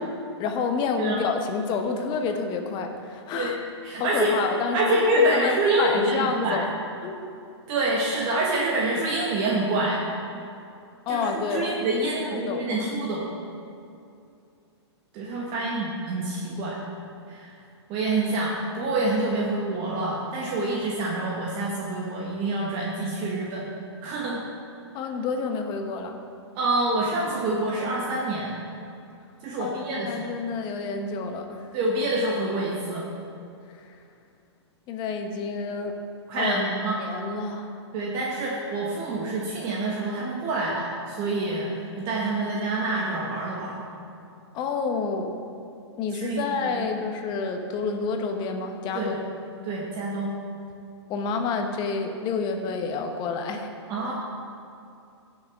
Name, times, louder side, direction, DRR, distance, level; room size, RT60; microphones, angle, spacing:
voice 1, 0.4-3.6 4.0-6.7 7.0-7.3 11.1-11.7 12.0-12.9 24.9-26.2 29.6-31.7 34.9-35.9 36.3-36.7 37.0-37.7 44.5-45.4 46.0-49.3 51.1-53.7, left 4 dB, 30° left, 5 dB, 1.1 m, -29 dB
voice 2, 3.8-4.4 4.7-6.6 7.7-10.0 11.1-13.2 15.1-16.8 17.3-17.5 17.9-23.7 24.0-24.4 26.5-28.5 29.4-30.1 31.7-33.0 36.3-37.0 37.9-43.8 46.1-46.9 48.9-49.2 49.6-50.3 53.9-54.1, right 2 dB, 35° right, -4 dB, 1.5 m, -26 dB
16.0 x 6.4 x 3.6 m, 2.5 s
hypercardioid pair, 130°, 15 cm